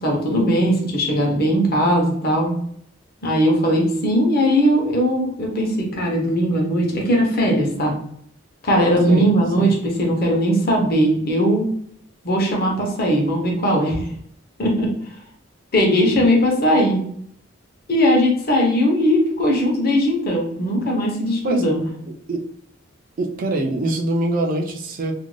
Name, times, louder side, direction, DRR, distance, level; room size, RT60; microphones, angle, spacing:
voice 1, 0.0-2.5 3.2-7.9 8.6-11.6 12.2-14.0 14.6-14.9 15.7-17.0 17.9-21.9, equal, 45° left, 0 dB, 0.7 m, -19 dB
voice 2, 23.2-25.1, right 2 dB, 40° right, 2 dB, 0.3 m, -23 dB
2.5 x 2.2 x 3.1 m, 0.67 s
head